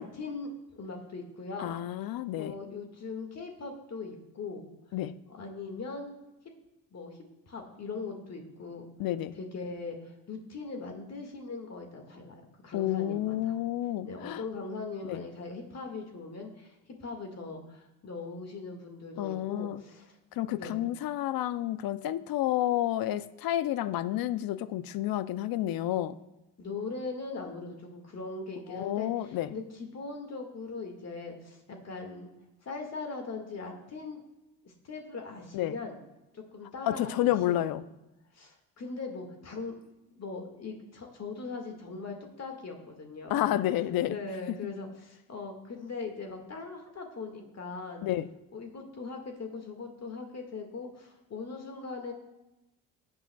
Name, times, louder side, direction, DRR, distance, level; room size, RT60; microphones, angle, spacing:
voice 1, 0.0-1.8 2.4-4.7 5.3-6.2 6.9-7.2 7.5-8.9 9.4-13.5 14.0-20.1 20.6-20.9 26.6-32.3 32.6-34.2 34.6-36.0 36.3-37.7 38.3-39.8 40.1-43.6 44.0-48.1 48.5-52.1, left 4 dB, 40° left, 3 dB, 1.8 m, -40 dB
voice 2, 1.6-2.5 4.9-5.1 9.0-9.3 12.7-14.4 15.1-15.3 19.2-19.8 20.3-26.2 28.7-29.5 35.5-35.7 36.8-37.8 43.3-44.2 44.5-44.6 48.0-48.3, left 13 dB, 60° left, 15 dB, 0.6 m, -30 dB
16.0 x 8.8 x 2.3 m, 0.97 s
supercardioid pair, 75°, 39 cm